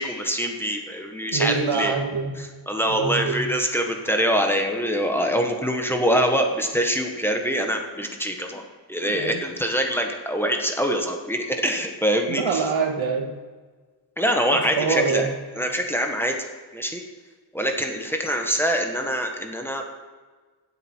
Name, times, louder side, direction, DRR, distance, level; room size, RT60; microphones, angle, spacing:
voice 1, 0.0-1.9 2.4-8.6 8.9-12.7 14.2-15.3 15.5-16.4 16.7-17.0 17.5-19.8, equal, 5° left, 3 dB, 1.3 m, -24 dB
voice 2, 1.3-2.4 2.9-3.4 9.1-9.4 12.3-13.3 14.8-15.3, right 5 dB, 85° right, 3 dB, 1.9 m, -25 dB
17.0 x 8.3 x 4.5 m, 1.4 s
wide cardioid pair, 150°, 46 cm